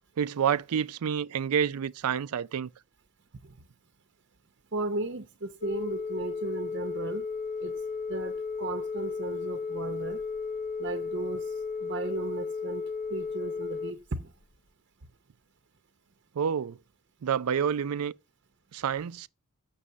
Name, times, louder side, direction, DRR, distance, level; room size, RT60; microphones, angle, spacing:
voice 1, 0.2-2.7 16.4-16.8 17.2-18.1 18.7-19.3, right 8 dB, 90° right, 0.4 m, -28 dB
voice 2, 4.7-7.3 7.6-7.8 8.1-10.2 10.8-11.4 11.8-12.8 13.1-14.3, right 3 dB, 55° right, 0.7 m, -35 dB
Telephone, 5.6-13.9, left 5 dB, 40° left, 0.7 m, -34 dB
6.9 x 6.2 x 7.3 m
head